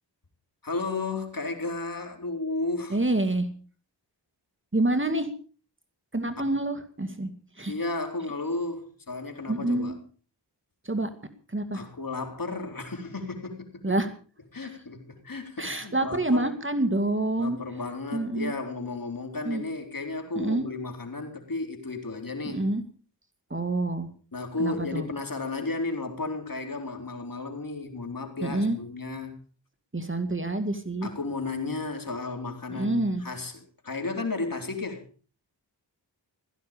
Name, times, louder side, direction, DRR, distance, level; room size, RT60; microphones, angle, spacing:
voice 1, 0.6-3.0 6.4-6.5 7.7-10.0 11.7-13.8 14.5-16.5 17.4-22.7 24.3-29.3 31.0-35.1, left 3 dB, 50° left, 4.0 m, -33 dB
voice 2, 2.9-3.5 4.7-5.3 6.1-7.3 7.6-7.7 9.5-9.9 10.8-11.1 11.5-11.8 13.8-14.1 14.6-14.8 15.6-17.6 18.1-18.5 19.5-19.6 20.4-20.6 22.5-22.8 23.5-24.1 24.6-25.1 28.4-28.8 29.9-31.1 32.7-33.2, right 2 dB, 25° right, 2.3 m, -27 dB
16.5 x 14.5 x 5.2 m
cardioid pair, 55°, 43 cm